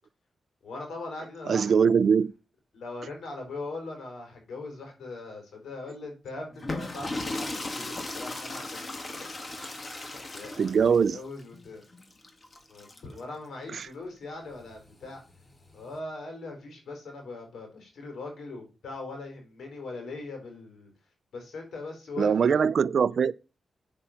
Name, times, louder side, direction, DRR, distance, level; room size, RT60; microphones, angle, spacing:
voice 1, 0.6-1.7 2.7-9.6 10.3-10.8 11.1-11.8 12.7-15.2 15.7-20.9 21.3-22.6, left 3 dB, 85° left, 4.4 m, -40 dB
voice 2, 1.5-2.3 10.6-11.2 13.7-13.9 22.2-23.3, right 6 dB, 65° right, 0.4 m, -22 dB
sound 1, 6.5-13.2 14.5-15.9, left 2 dB, 35° left, 1.9 m, -37 dB
8.7 x 6.9 x 5.8 m
cardioid pair, 95°, 0 cm